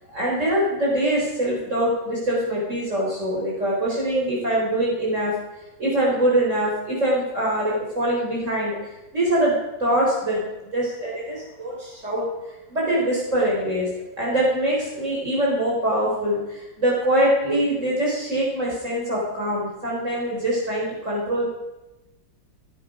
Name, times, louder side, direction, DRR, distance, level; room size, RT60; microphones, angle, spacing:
voice 1, 0.1-5.3 5.8-8.8 9.1-12.3 12.7-13.9 14.2-21.4, right 1 dB, 40° right, -5 dB, 4.6 m, -23 dB
27.5 x 9.6 x 5.1 m, 1.0 s
omnidirectional pair, 2.1 m